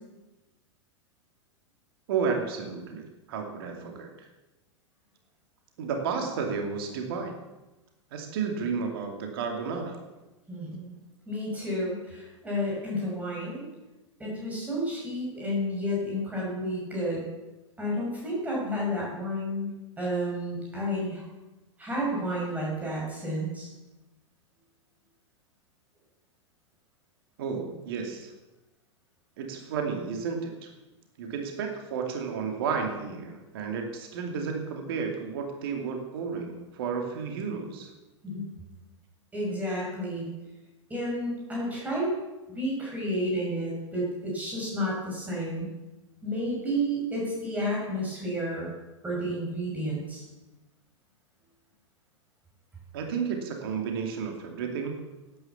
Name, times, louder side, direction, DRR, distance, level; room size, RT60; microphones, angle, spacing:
voice 1, 2.1-4.3 5.8-7.4 8.1-10.0 27.4-28.3 29.4-30.7 31.2-37.9 52.9-55.0, right 5 dB, 50° right, 3 dB, 2.4 m, -32 dB
voice 2, 10.5-10.9 11.3-13.7 14.2-17.2 17.8-21.2 21.8-23.7 38.2-38.5 39.3-40.3 40.9-42.1 42.5-45.7 46.2-48.7 49.0-50.2, equal, 10° right, -4 dB, 6.1 m, -31 dB
12.0 x 9.9 x 7.1 m, 1.1 s
figure-of-eight pair, 100°, 16 cm